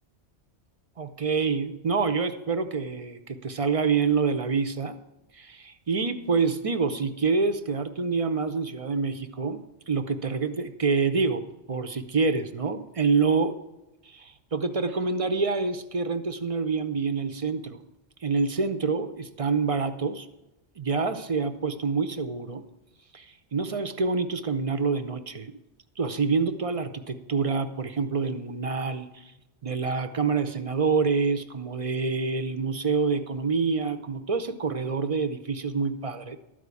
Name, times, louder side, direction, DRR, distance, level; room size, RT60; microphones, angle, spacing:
voice 1, 1.0-5.0 5.3-13.6 14.0-17.8 18.2-20.3 20.8-22.6 23.1-25.5 26.0-29.3 29.6-36.4, right 4 dB, 40° right, 10 dB, 0.5 m, -27 dB
12.5 x 4.9 x 8.3 m, 0.98 s
omnidirectional pair, 1.1 m